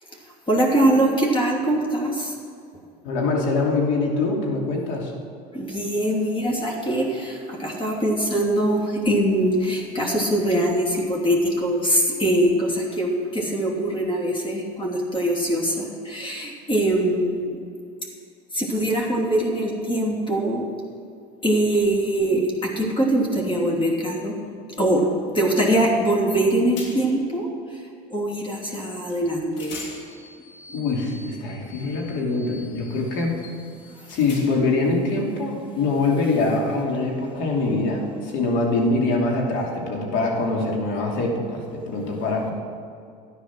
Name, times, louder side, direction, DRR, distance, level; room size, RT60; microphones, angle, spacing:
voice 1, 0.5-2.3 5.5-17.6 18.5-20.7 21.4-24.3 24.8-25.1 25.3-27.5 28.1-29.7, right 1 dB, 25° left, -2 dB, 3.0 m, -22 dB
voice 2, 3.0-5.1 30.7-33.4 34.1-42.5, left 3 dB, 65° left, -1 dB, 3.1 m, -24 dB
sound 1, 26.3-26.4 26.8-27.3 29.1-29.2 29.5-34.8, left 3 dB, 85° left, 3.1 m, -43 dB
12.5 x 9.8 x 6.2 m, 2.4 s
supercardioid pair, 95°, 21 cm